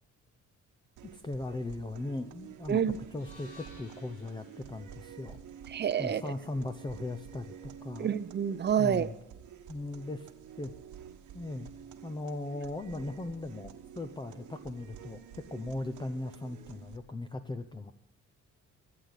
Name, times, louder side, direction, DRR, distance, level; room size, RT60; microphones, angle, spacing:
sound 1, 1.0-17.0, right 8 dB, 75° right, 1.3 m, -50 dB
voice 1, 1.1-2.8 3.1-5.4 6.0-8.1 8.8-9.1 9.7-10.3 10.6-10.7 11.3-11.7 12.0-17.9, left 2 dB, 15° left, 8 dB, 0.7 m, -38 dB
sound 2, 3.1-7.3, left 1 dB, 85° left, 5.1 m, -58 dB
voice 2, 5.7-6.2 8.0-9.1, right 8 dB, 35° right, 14 dB, 0.7 m, -28 dB
15.5 x 8.1 x 8.2 m, 0.96 s
cardioid pair, 90°, 30 cm